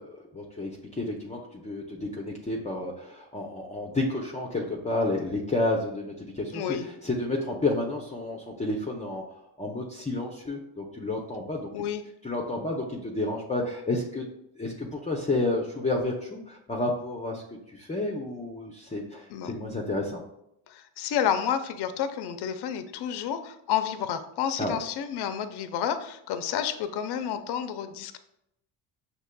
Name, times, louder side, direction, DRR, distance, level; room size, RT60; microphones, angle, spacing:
voice 1, 0.0-9.2 9.6-11.7 12.2-14.3 14.6-17.4 17.7-20.2 24.6-24.8, left 2 dB, 15° left, -2 dB, 0.6 m, -30 dB
voice 2, 6.5-6.9 11.7-12.0 19.3-19.5 20.7-28.2, left 9 dB, 55° left, 10 dB, 0.6 m, -30 dB
6.2 x 2.9 x 2.2 m, 0.80 s
supercardioid pair, 65°, 49 cm